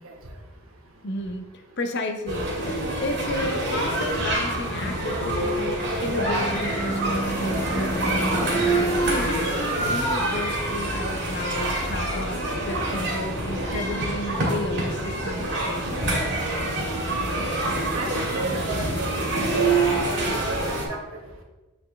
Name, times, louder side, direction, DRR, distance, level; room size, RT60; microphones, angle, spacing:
voice 1, 1.0-1.4 1.8-2.5 3.0-16.1, left 2 dB, 55° left, 6 dB, 0.7 m, -33 dB
sound 1, 2.3-20.8, right 2 dB, 60° right, 1.9 m, -26 dB
Car passing by / Truck / Engine, 4.9-13.6, right 1 dB, 20° left, 0.6 m, -35 dB
voice 2, 17.9-21.0, right 3 dB, 85° right, 2 dB, 1.1 m, -34 dB
8.0 x 4.3 x 3.2 m, 1.1 s
head